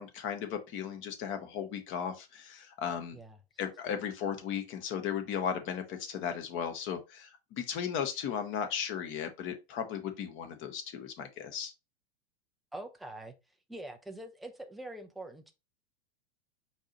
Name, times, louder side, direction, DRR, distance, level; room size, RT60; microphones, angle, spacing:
voice 1, 0.0-3.2 3.6-11.7, left 8 dB, 35° left, 1.1 m, -36 dB
voice 2, 12.7-13.3 13.7-15.5, right 1 dB, ahead, 0.3 m, -44 dB
4.6 x 2.9 x 3.8 m
hypercardioid pair, 100°, 33 cm